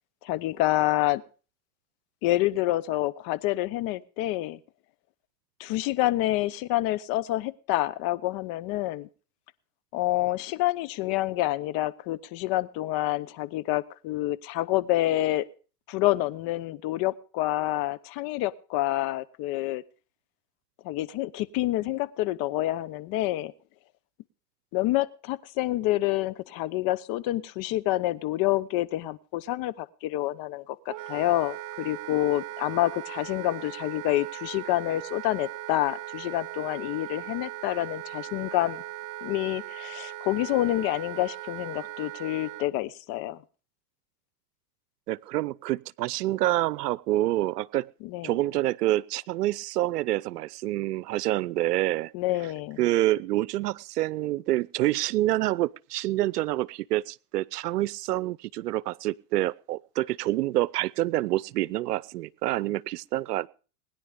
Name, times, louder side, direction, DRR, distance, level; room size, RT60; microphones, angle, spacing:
voice 1, 0.2-1.2 2.2-4.6 5.6-9.1 9.9-15.5 15.9-19.8 20.8-23.5 24.7-38.8 39.2-43.4 48.0-48.3 52.1-52.8, left 16 dB, 50° left, 1.1 m, -28 dB
Wind instrument woodwind instrument, 30.9-42.7, right 15 dB, 40° right, 0.9 m, -39 dB
voice 2, 45.1-47.9 48.2-52.1 52.8-63.5, right 16 dB, 80° right, 0.7 m, -27 dB
20.5 x 10.5 x 5.2 m
hypercardioid pair, 100°, 47 cm